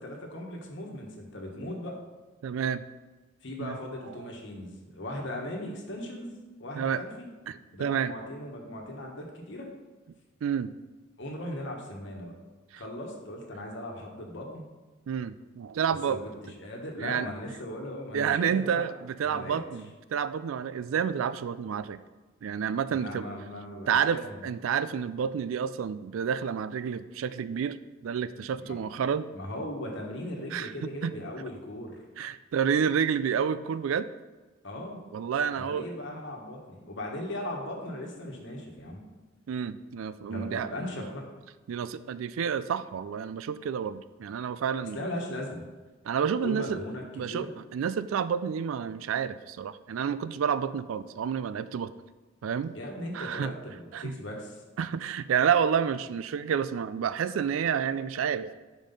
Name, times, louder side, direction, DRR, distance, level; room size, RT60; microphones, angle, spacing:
voice 1, 0.0-2.0 3.4-6.3 6.6-7.3 7.7-9.7 11.2-12.3 12.7-14.6 16.1-18.8 19.2-19.6 22.9-24.5 28.6-28.8 29.3-32.0 34.6-35.0 35.5-39.0 40.3-41.2 44.9-45.6 46.4-47.5 52.7-54.6, left 1 dB, 65° left, 0 dB, 1.3 m, -38 dB
voice 2, 2.4-2.8 3.6-3.8 6.8-7.0 7.5-8.1 10.4-10.7 12.7-12.8 15.1-16.3 17.0-17.3 18.1-19.8 20.1-22.0 22.4-23.3 23.9-27.8 28.0-29.3 30.5-31.1 32.2-34.1 35.1-35.9 39.5-40.7 41.7-45.0 46.0-46.8 47.2-47.5 47.7-51.9 52.4-52.7 53.1-53.5 53.9-54.2 54.8-58.5, right 7 dB, 80° right, 14 dB, 0.3 m, -29 dB
5.7 x 5.1 x 5.3 m, 1.3 s
head